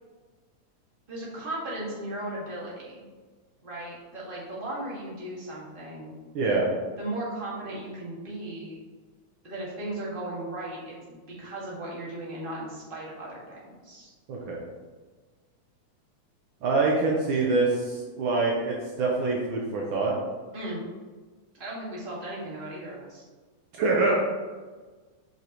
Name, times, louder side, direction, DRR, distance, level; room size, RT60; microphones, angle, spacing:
voice 1, 1.1-3.0 3.6-6.2 7.0-8.8 9.4-14.1 20.5-20.8 21.6-23.2, right 1 dB, 20° right, -6 dB, 1.7 m, -36 dB
voice 2, 6.3-6.7 14.3-14.6 16.6-20.1 23.8-24.2, right 3 dB, 80° right, -2 dB, 1.1 m, -25 dB
8.2 x 5.0 x 3.0 m, 1.4 s
omnidirectional pair, 3.4 m